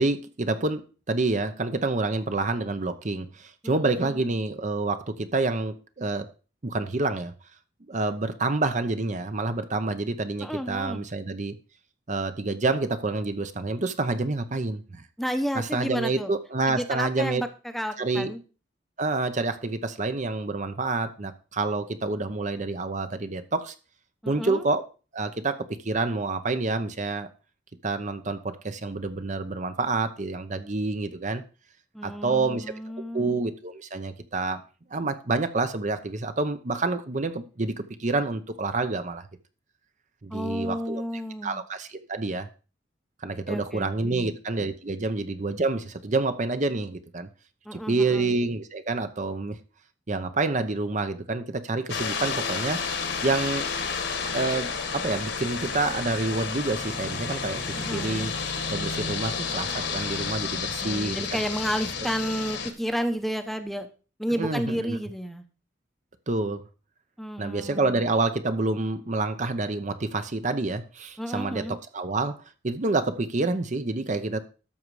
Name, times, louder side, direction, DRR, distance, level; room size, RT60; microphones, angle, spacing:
voice 1, 0.0-6.3 6.6-7.3 7.9-11.6 12.1-15.0 15.5-17.4 18.0-18.3 19.0-23.7 24.3-24.8 25.1-27.3 27.8-31.4 32.0-32.7 33.1-34.6 34.9-39.3 40.2-41.0 41.4-42.5 43.2-47.3 47.7-49.6 50.1-52.8 53.2-53.7 54.3-58.3 58.7-61.4 64.4-65.0 66.3-66.7 67.4-74.4, right 3 dB, 40° right, 0.8 m, -28 dB
voice 2, 3.6-4.2 10.4-11.1 15.2-16.3 16.7-18.4 24.2-24.6 31.9-33.4 40.3-41.6 43.5-44.3 47.7-48.3 57.8-58.3 60.8-63.9 64.2-65.4 67.2-68.0 71.2-71.8, equal, ahead, 0.8 m, -32 dB
sound 1, 51.9-62.7, left 5 dB, 65° left, 1.7 m, -31 dB
12.5 x 6.5 x 4.8 m
head